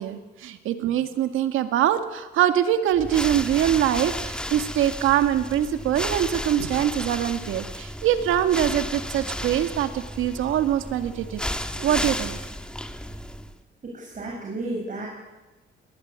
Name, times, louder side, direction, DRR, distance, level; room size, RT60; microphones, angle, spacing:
voice 1, 0.0-11.4 11.8-12.4, right 11 dB, 85° right, 8 dB, 2.1 m, -23 dB
sound 1, 2.9-13.6, equal, 5° left, 1.9 m, -33 dB
voice 2, 13.8-15.1, right 2 dB, 40° right, -1 dB, 7.4 m, -32 dB
21.5 x 19.5 x 9.7 m, 1.1 s
cardioid pair, 90°, 20 cm